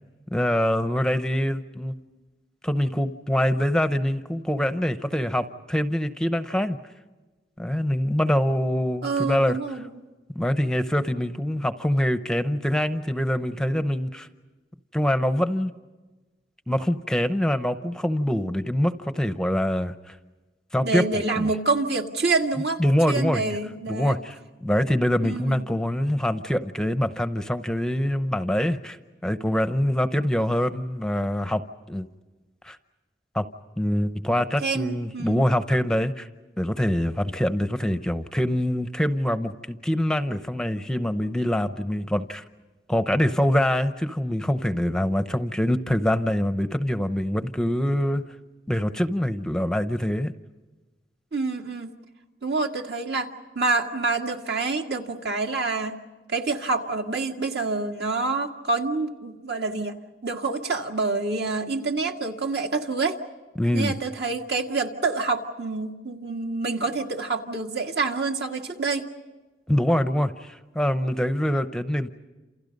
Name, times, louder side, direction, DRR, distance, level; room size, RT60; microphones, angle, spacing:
voice 1, 0.3-1.9 2.6-6.8 7.6-9.8 10.3-14.3 14.9-15.7 16.7-20.2 20.7-21.0 21.4-21.5 22.8-23.6 23.9-29.0 29.2-31.6 31.9-32.1 32.6-32.8 33.3-33.4 33.8-36.3 36.6-42.4 42.9-48.2 48.7-50.3 63.6-64.0 69.7-72.1, equal, 5° left, 9 dB, 0.7 m, -24 dB
voice 2, 9.0-9.9 20.8-22.8 23.1-24.2 25.2-25.7 34.6-35.5 51.3-51.9 52.4-56.0 56.3-60.0 60.2-63.2 63.7-69.1, right 3 dB, 65° right, 2 dB, 2.0 m, -27 dB
29.0 x 28.0 x 5.3 m, 1.2 s
head